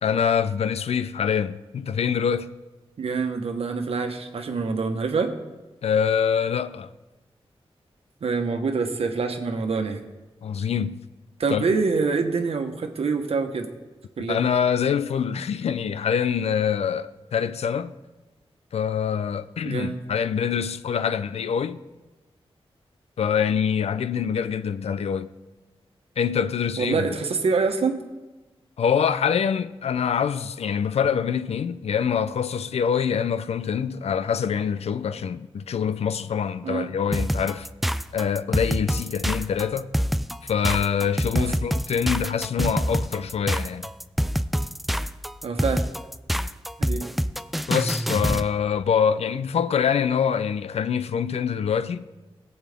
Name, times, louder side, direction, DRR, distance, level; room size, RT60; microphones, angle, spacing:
voice 1, 0.0-2.5 5.8-6.9 10.4-11.0 11.5-11.6 14.3-17.9 18.7-21.8 23.2-25.3 26.2-27.1 28.8-37.7 38.1-39.9 40.4-43.9 47.7-52.1, left 7 dB, 85° left, 0.5 m, -25 dB
voice 2, 3.0-5.3 8.2-10.0 11.4-13.7 14.2-14.5 19.6-19.9 26.8-28.0 36.6-36.9 41.3-41.5 45.4-45.9 46.8-47.0, right 4 dB, 70° right, 1.2 m, -25 dB
sound 1, 37.1-48.5, equal, ahead, 0.3 m, -26 dB
20.5 x 7.9 x 3.5 m
wide cardioid pair, 125°, 10 cm